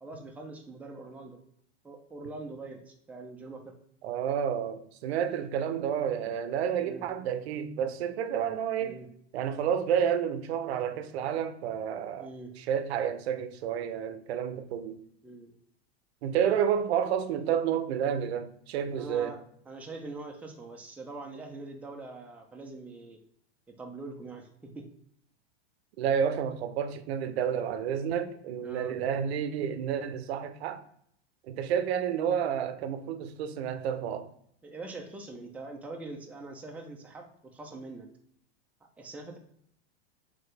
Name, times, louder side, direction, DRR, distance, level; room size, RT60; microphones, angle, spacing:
voice 1, 0.0-1.4 1.8-3.7 6.8-7.1 8.8-9.1 12.2-12.5 15.2-15.5 19.0-19.4 19.7-23.2 23.8-24.9 28.6-29.0 34.6-38.1 39.0-39.4, right 2 dB, 5° right, 0.5 m, -43 dB
voice 2, 4.0-9.0 9.3-12.3 12.6-15.0 16.2-19.3 26.0-30.8 31.5-34.3, right 8 dB, 75° right, 0.6 m, -30 dB
3.8 x 3.3 x 3.3 m
supercardioid pair, 125°, 32 cm